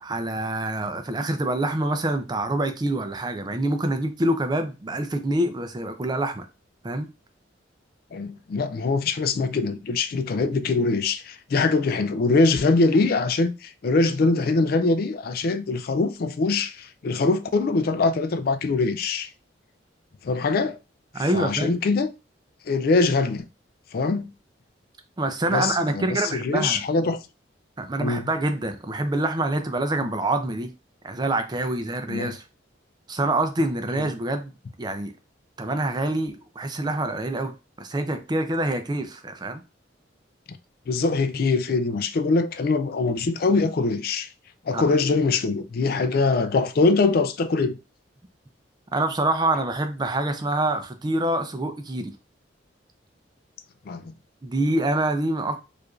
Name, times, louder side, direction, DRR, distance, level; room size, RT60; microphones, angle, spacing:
voice 1, 0.0-6.5 6.8-7.1 21.1-21.7 25.2-26.8 27.8-30.7 31.0-32.4 33.1-34.5 34.8-35.1 35.6-39.6 44.7-44.8 48.9-52.1 54.4-55.6, right 1 dB, 20° right, 0.4 m, -26 dB
voice 2, 8.1-19.3 20.2-20.8 21.2-22.1 22.7-23.5 23.9-24.3 25.5-27.2 28.0-28.3 30.0-30.1 32.1-32.3 34.0-34.1 40.5-40.6 40.9-44.3 44.7-47.8 53.9-54.1, left 3 dB, 50° left, 0.4 m, -23 dB
4.7 x 2.5 x 2.4 m
head